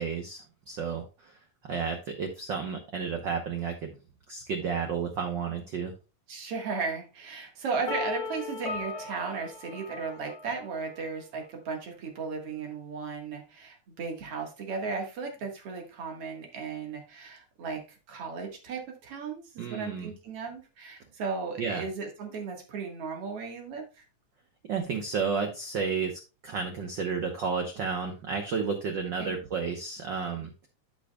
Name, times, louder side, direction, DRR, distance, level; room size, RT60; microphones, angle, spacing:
voice 1, 0.0-1.4 1.7-3.9 4.3-5.9 19.6-20.1 21.6-21.8 24.7-30.5, right 5 dB, 80° right, 4 dB, 1.0 m, -32 dB
voice 2, 6.3-17.8 18.1-24.0 29.2-29.4, right 4 dB, 55° right, 2 dB, 2.3 m, -35 dB
sound 1, 7.9-10.8, left 4 dB, 75° left, 2.5 m, -37 dB
13.5 x 5.3 x 2.3 m, 0.30 s
omnidirectional pair, 3.4 m